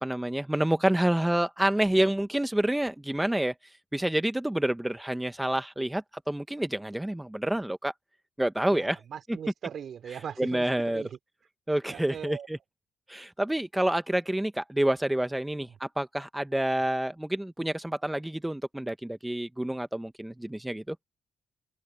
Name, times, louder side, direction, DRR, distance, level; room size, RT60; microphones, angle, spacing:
voice 1, 0.0-3.5 3.9-7.9 8.4-9.0 9.3-9.4 10.4-11.0 11.7-12.6 13.1-21.0, right 1 dB, 5° right, 1.0 m, -28 dB
voice 2, 8.7-10.6 10.9-11.1 11.9-12.5, right 8 dB, 60° right, 3.5 m, -39 dB
cardioid pair, 90°, 0 cm